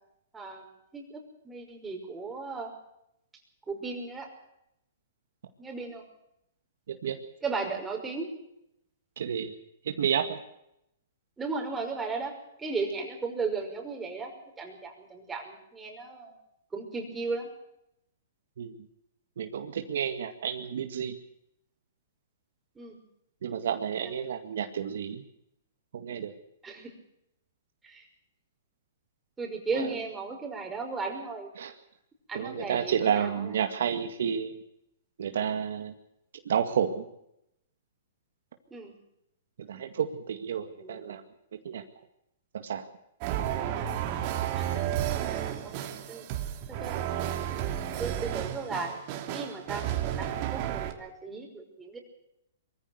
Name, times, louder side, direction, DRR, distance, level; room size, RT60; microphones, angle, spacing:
voice 1, 0.3-0.7 0.9-2.7 3.7-4.3 5.6-6.0 7.4-8.3 11.4-16.3 16.7-17.5 22.8-23.0 24.0-24.1 26.6-26.9 27.8-28.1 29.4-31.5 32.3-33.5 38.7-38.9 40.8-41.2 44.5-44.8 45.6-45.7 46.1-46.3 46.8-47.7 48.0-48.9 49.3-52.0, right 4 dB, 10° right, 1 dB, 5.7 m, -36 dB
voice 2, 9.2-9.5 9.8-10.4 18.6-18.9 19.4-21.2 23.4-25.2 25.9-26.3 29.7-29.9 31.6-31.7 32.3-34.6 35.2-35.9 36.5-37.0 39.6-41.2 41.6-41.8 42.5-42.9, right 8 dB, 70° right, 7 dB, 2.1 m, -30 dB
sound 1, 43.2-50.9, right 11 dB, 40° right, 3.0 m, -32 dB
22.5 x 15.0 x 8.0 m, 0.79 s
hypercardioid pair, 135°, 0 cm